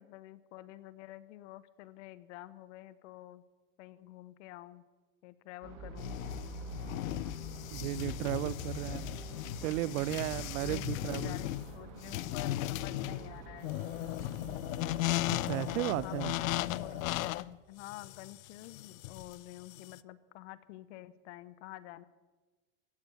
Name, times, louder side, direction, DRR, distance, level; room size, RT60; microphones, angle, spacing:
voice 1, 0.0-3.4 3.8-4.8 5.2-6.2 9.6-9.9 10.6-13.7 15.9-17.3 17.7-22.0, left 16 dB, 65° left, 16 dB, 0.9 m, -49 dB
sound 1, 5.6-17.3, right 3 dB, 45° right, 2.4 m, -47 dB
sound 2, 6.0-20.0, left 16 dB, 90° left, 0.5 m, -37 dB
voice 2, 7.7-9.0 9.6-11.4 15.3-16.3, right 17 dB, 85° right, 22 dB, 0.5 m, -34 dB
15.5 x 6.9 x 9.5 m, 1.3 s
supercardioid pair, 145°, 39 cm